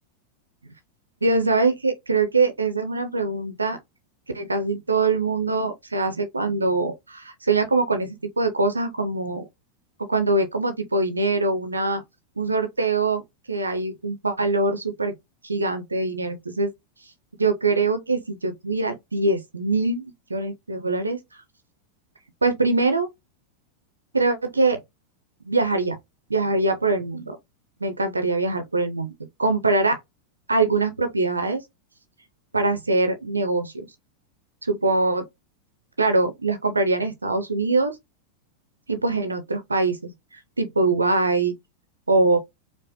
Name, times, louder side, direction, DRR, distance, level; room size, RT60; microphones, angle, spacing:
voice 1, 1.2-3.8 4.3-9.4 10.1-12.0 12.4-13.2 13.5-15.1 15.4-16.7 17.4-21.2 22.4-23.1 24.1-24.8 25.5-26.0 26.3-27.4 27.8-29.1 29.4-30.0 30.5-31.6 32.5-33.9 34.6-35.3 36.0-38.0 38.9-40.1 40.6-41.5 42.1-42.4, right 3 dB, 80° right, 0.5 m, -23 dB
4.7 x 2.0 x 2.8 m
figure-of-eight pair, 90°, 0 cm